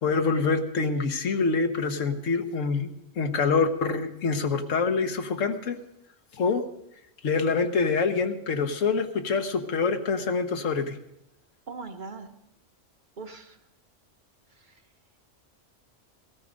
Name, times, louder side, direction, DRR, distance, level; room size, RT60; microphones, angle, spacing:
voice 1, 0.0-2.9 3.2-5.8 6.3-6.7 7.2-11.0, left 4 dB, 85° left, 7 dB, 1.4 m, -25 dB
voice 2, 11.7-12.3 13.2-13.6 14.6-14.8, right 4 dB, 45° right, 6 dB, 1.0 m, -40 dB
17.0 x 13.0 x 5.1 m, 0.81 s
omnidirectional pair, 1.3 m